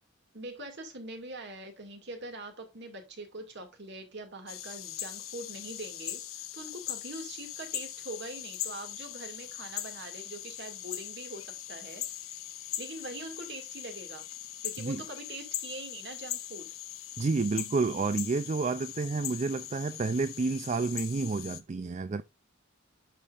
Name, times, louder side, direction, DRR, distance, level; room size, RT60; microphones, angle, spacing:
voice 1, 0.3-12.4 12.8-14.3 14.6-16.7, right 2 dB, 55° right, 2.2 m, -43 dB
sound 1, 4.5-21.6, left 12 dB, 75° left, 1.1 m, -40 dB
voice 2, 17.2-22.2, right 4 dB, 35° right, 0.4 m, -30 dB
9.9 x 5.3 x 2.5 m
head